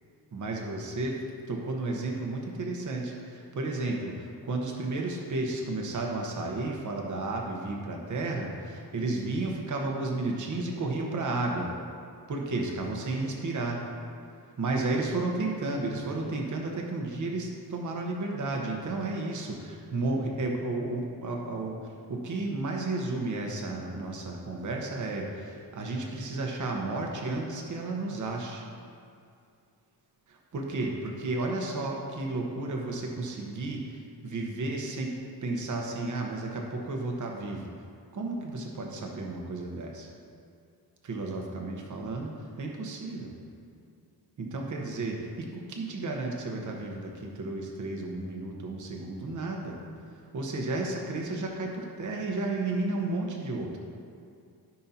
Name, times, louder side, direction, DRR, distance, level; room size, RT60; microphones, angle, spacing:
voice 1, 0.3-1.2 1.5-11.7 12.3-13.8 14.6-28.6 30.3-35.2 35.4-37.7 38.1-40.1 41.0-42.3 42.6-43.3 44.4-49.8 50.3-53.8, right 2 dB, 45° right, 0 dB, 1.1 m, -32 dB
14.5 x 5.6 x 2.9 m, 2.4 s
wide cardioid pair, 155°, 40 cm